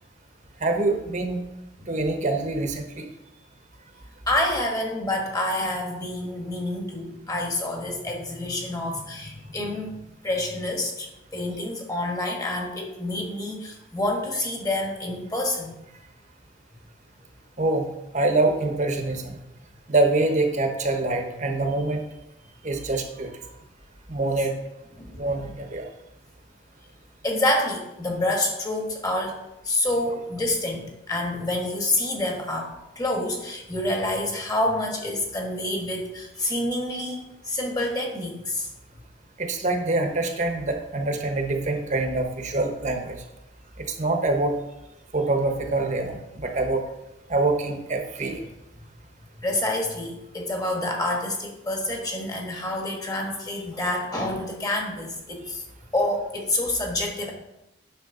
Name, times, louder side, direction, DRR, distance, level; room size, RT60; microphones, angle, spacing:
voice 1, 0.6-1.4 1.9-3.1 17.6-19.4 19.9-22.1 22.6-23.5 24.1-24.5 25.2-25.9 39.4-43.2 43.8-44.6 45.1-46.8 47.3-48.5, right 2 dB, 40° right, 4 dB, 1.2 m, -25 dB
voice 2, 4.3-15.7 25.0-25.2 27.2-29.3 29.6-38.7 49.4-55.6 55.9-57.3, left 1 dB, 20° left, 1 dB, 1.5 m, -28 dB
9.5 x 6.3 x 3.9 m, 0.90 s
head